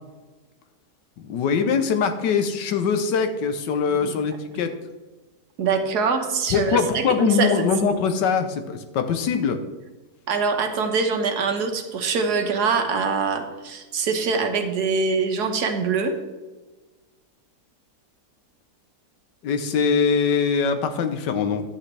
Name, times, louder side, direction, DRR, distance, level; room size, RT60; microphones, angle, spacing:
voice 1, 1.2-4.7 6.5-9.6 19.4-21.6, left 6 dB, 85° left, 8 dB, 1.5 m, -22 dB
voice 2, 5.6-7.5 10.3-16.1, right 5 dB, 70° right, 6 dB, 1.5 m, -24 dB
10.5 x 8.5 x 3.3 m, 1.2 s
omnidirectional pair, 1.8 m